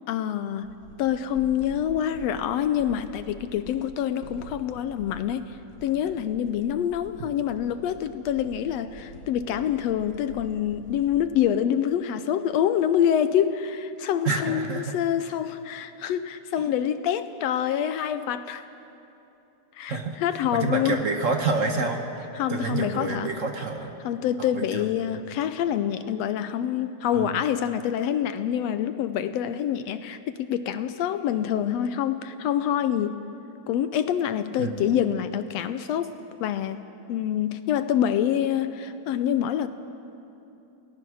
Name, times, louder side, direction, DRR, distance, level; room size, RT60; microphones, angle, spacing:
voice 1, 0.1-0.7 1.0-5.5 5.8-18.6 19.8-21.0 22.3-23.3 24.0-33.2 33.7-36.1 36.4-36.8 37.1-39.7, left 9 dB, 75° left, 11 dB, 1.6 m, -26 dB
sound 1, 0.6-11.5, equal, 40° left, 3.2 m, -47 dB
voice 2, 14.2-14.8 16.6-16.7 19.9-20.2 20.5-22.0 22.5-23.9 24.4-24.8 27.1-27.3 34.6-35.0, right 3 dB, 55° right, 4 dB, 0.8 m, -28 dB
28.0 x 18.5 x 6.3 m, 2.8 s
omnidirectional pair, 3.4 m